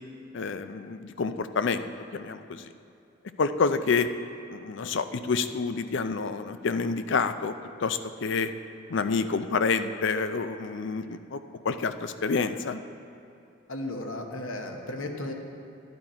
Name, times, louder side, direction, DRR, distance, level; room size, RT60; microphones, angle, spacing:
voice 1, 0.3-1.9 2.1-2.7 3.4-4.1 4.5-7.6 7.8-8.5 8.9-11.4 11.6-12.8, left 4 dB, 65° left, 10 dB, 0.5 m, -28 dB
voice 2, 13.7-15.3, left 1 dB, 85° left, 2 dB, 1.2 m, -34 dB
12.0 x 9.7 x 4.4 m, 2.6 s
head